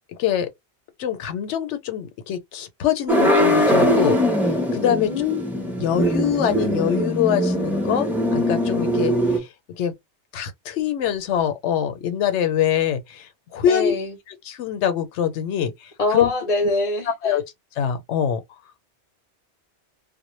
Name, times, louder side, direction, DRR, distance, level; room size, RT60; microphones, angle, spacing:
voice 1, 1.0-4.2 4.5-5.1 5.8-9.9 10.3-14.0 14.4-16.3 17.2-17.4 17.8-18.4, left 9 dB, 80° left, 0.9 m, -24 dB
sound 1, 3.1-9.4, equal, ahead, 0.5 m, -21 dB
voice 2, 4.9-5.8 13.6-14.1 16.0-17.4, left 3 dB, 45° left, 0.6 m, -25 dB
2.1 x 2.1 x 3.0 m
omnidirectional pair, 1.2 m